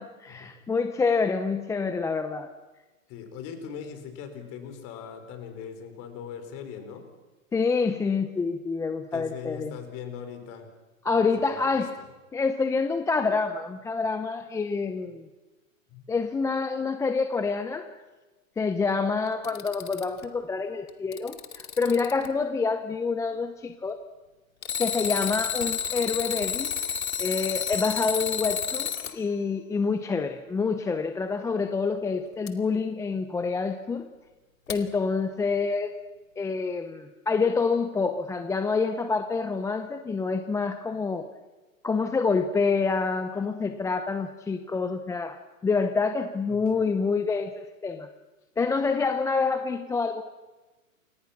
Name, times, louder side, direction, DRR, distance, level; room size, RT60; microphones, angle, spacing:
voice 1, 0.0-2.5 7.5-9.7 11.0-11.9 12.3-15.3 16.1-17.9 18.6-24.0 24.8-34.1 34.7-36.0 36.4-41.3 41.8-45.4 45.6-48.1 48.6-50.2, left 4 dB, 5° left, 9 dB, 0.7 m, -27 dB
voice 2, 3.1-7.0 9.1-10.7 11.2-11.9 15.9-16.1 46.5-47.0, left 7 dB, 35° left, 7 dB, 5.0 m, -40 dB
Alarm, 19.3-20.2 20.9-22.3 24.6-29.1 32.5-32.6 34.7-34.8, left 7 dB, 85° left, 2.6 m, -30 dB
29.5 x 25.0 x 6.0 m, 1.2 s
hypercardioid pair, 135°, 41 cm